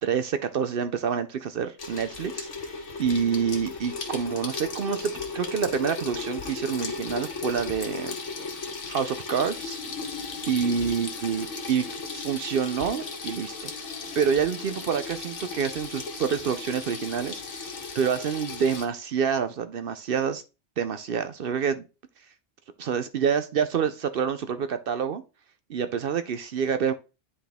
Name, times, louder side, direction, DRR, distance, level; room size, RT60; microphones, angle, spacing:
voice 1, 0.0-8.1 8.9-9.8 10.5-11.9 12.1-13.7 14.1-17.7 17.9-20.4 20.8-21.8 22.8-25.2 25.7-26.9, right 7 dB, 60° right, 0.7 m, -27 dB
Water tap faucet / Sink (filling or washing), 1.8-18.9, left 4 dB, 85° left, 1.6 m, -36 dB
9.8 x 4.2 x 3.5 m
omnidirectional pair, 1.2 m